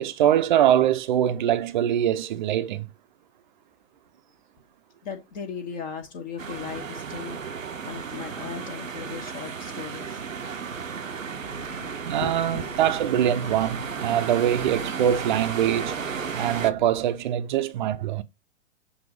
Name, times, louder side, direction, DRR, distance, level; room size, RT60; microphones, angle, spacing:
voice 1, 0.0-2.9 12.0-16.0 16.3-18.2, right 11 dB, 40° right, 0.7 m, -23 dB
voice 2, 5.0-10.2 12.1-12.7, left 6 dB, 35° left, 1.5 m, -37 dB
sound 1, 6.4-16.7, right 6 dB, 80° right, 0.8 m, -34 dB
sound 2, 11.4-17.0, left 4 dB, 55° left, 0.9 m, -46 dB
7.5 x 2.6 x 5.1 m
figure-of-eight pair, 115°, 38 cm